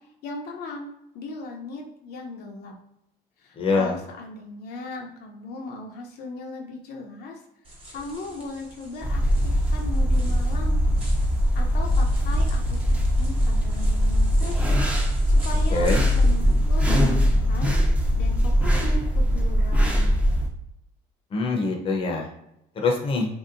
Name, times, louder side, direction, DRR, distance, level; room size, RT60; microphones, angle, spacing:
voice 1, 0.2-2.7 3.4-7.4 7.9-11.0 11.5-14.8 15.3-17.9 18.2-20.2, left 3 dB, 70° left, 1 dB, 0.6 m, -37 dB
voice 2, 3.6-4.0 15.7-16.0 21.3-22.3 22.8-23.3, left 3 dB, 30° left, 1 dB, 0.6 m, -24 dB
sound 1, 7.6-18.9, equal, 30° right, 1.1 m, -35 dB
sound 2, 9.0-20.5, equal, 10° right, 0.5 m, -21 dB
3.1 x 2.7 x 2.5 m, 0.81 s
cardioid pair, 110°, 17 cm